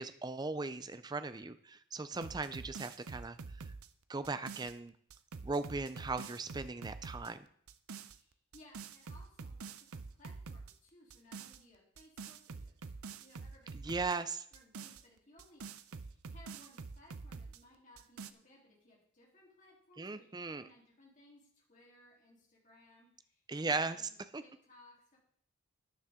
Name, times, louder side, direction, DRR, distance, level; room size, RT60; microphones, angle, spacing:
voice 1, 0.0-3.4 4.1-4.9 5.4-7.4 13.8-14.5 20.0-20.7 23.5-24.0 24.3-24.4, right 3 dB, 20° right, 12 dB, 0.4 m, -38 dB
sound 1, 2.1-4.7 5.1-7.3 7.7-8.2 8.5-10.7 11.1-11.6 12.0-14.2 14.5-17.6 18.0-18.3, right 4 dB, 90° right, 0.6 m, -47 dB
voice 2, 8.1-14.2 14.5-25.2, left 1 dB, 35° left, -3 dB, 3.4 m, -62 dB
12.5 x 9.4 x 3.7 m, 0.62 s
head